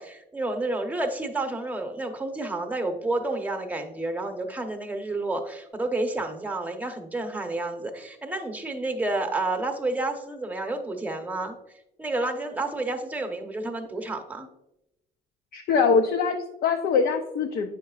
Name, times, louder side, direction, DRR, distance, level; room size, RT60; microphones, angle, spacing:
voice 1, 0.0-11.6 12.0-14.5, right 2 dB, 10° right, 4 dB, 0.9 m, -30 dB
voice 2, 15.5-17.7, left 5 dB, 65° left, 4 dB, 0.6 m, -23 dB
8.4 x 5.9 x 2.4 m, 0.87 s
cardioid pair, 110°, 17 cm